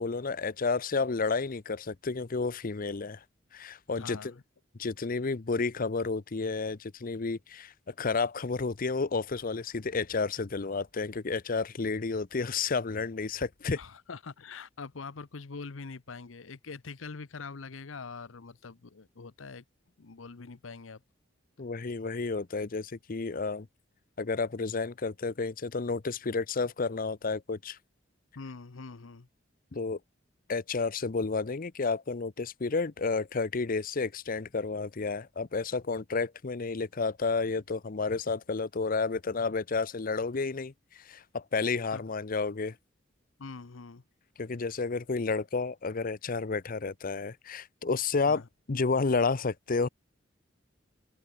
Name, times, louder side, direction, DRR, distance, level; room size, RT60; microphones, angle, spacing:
voice 1, 0.0-3.2 3.5-4.3 4.8-13.8 21.6-23.7 24.2-27.8 29.7-30.0 30.5-42.8 44.4-48.4 48.7-49.9, left 4 dB, 45° left, 0.7 m, -31 dB
voice 2, 4.0-4.4 13.7-19.6 20.0-21.0 28.4-29.3 41.9-42.0 43.4-44.0 48.3-48.5, left 4 dB, 80° left, 0.8 m, -43 dB
open air
head